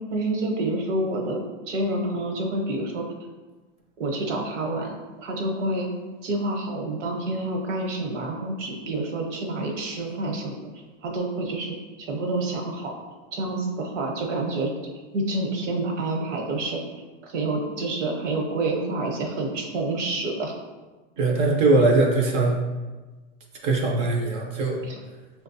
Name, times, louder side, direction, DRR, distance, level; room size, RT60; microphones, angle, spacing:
voice 1, 0.0-3.0 4.0-5.9 6.2-10.7 11.0-12.9 13.3-14.7 15.1-16.8 17.2-20.5 24.8-25.0, right 2 dB, 75° right, 1 dB, 1.0 m, -28 dB
voice 2, 21.2-22.6 23.6-24.8, right 2 dB, 20° right, 0 dB, 0.3 m, -21 dB
6.4 x 2.2 x 2.7 m, 1.3 s
supercardioid pair, 150°, 36 cm